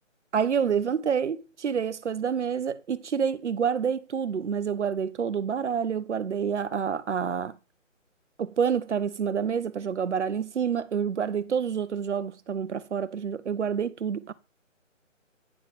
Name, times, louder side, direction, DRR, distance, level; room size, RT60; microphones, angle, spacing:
voice 1, 0.3-7.6 8.4-14.3, right 7 dB, 60° right, 0.7 m, -28 dB
9.7 x 3.8 x 4.9 m
figure-of-eight pair, 165°, 39 cm